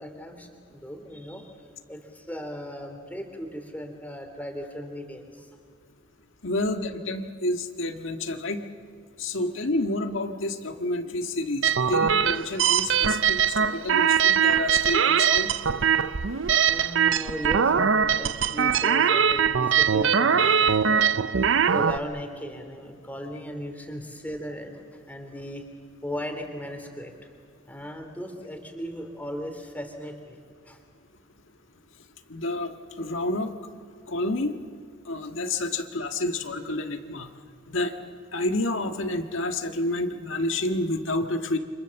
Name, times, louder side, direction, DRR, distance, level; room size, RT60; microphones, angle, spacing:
voice 1, 0.0-1.5 1.9-5.5 16.6-25.7 26.0-27.3 27.6-30.8, equal, 10° left, 4 dB, 2.9 m, -37 dB
voice 2, 6.4-8.7 9.2-15.5 32.3-33.5 34.1-34.6 35.0-37.3 37.7-37.9 38.3-41.6, left 2 dB, 70° left, 6 dB, 1.7 m, -29 dB
sound 1, 11.6-22.0, right 7 dB, 65° right, 0.6 m, -22 dB
28.5 x 26.5 x 7.1 m, 2.1 s
head